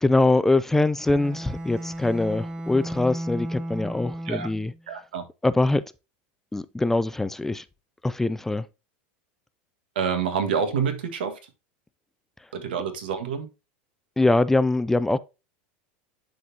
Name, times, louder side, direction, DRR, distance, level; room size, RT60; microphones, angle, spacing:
voice 1, 0.0-4.7 5.4-5.8 6.5-7.6 8.0-8.6 14.2-15.2, left 2 dB, 5° left, 0.3 m, -23 dB
Bowed string instrument, 1.0-4.8, right 1 dB, 20° right, 0.7 m, -34 dB
voice 2, 4.9-5.2 10.0-11.3 12.5-13.5, right 6 dB, 90° right, 1.6 m, -27 dB
10.5 x 4.0 x 2.8 m
supercardioid pair, 130°, 5 cm